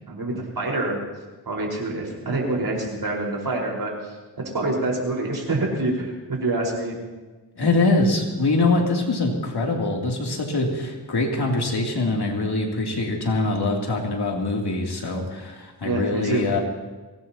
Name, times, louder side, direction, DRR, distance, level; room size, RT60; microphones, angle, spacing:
voice 1, 0.1-1.0 1.4-4.1 4.5-6.9 15.8-16.5, right 2 dB, 70° right, -1 dB, 5.0 m, -26 dB
voice 2, 7.6-16.6, left 2 dB, 75° left, -1 dB, 3.1 m, -23 dB
23.0 x 19.0 x 3.0 m, 1.3 s
wide cardioid pair, 90°, 39 cm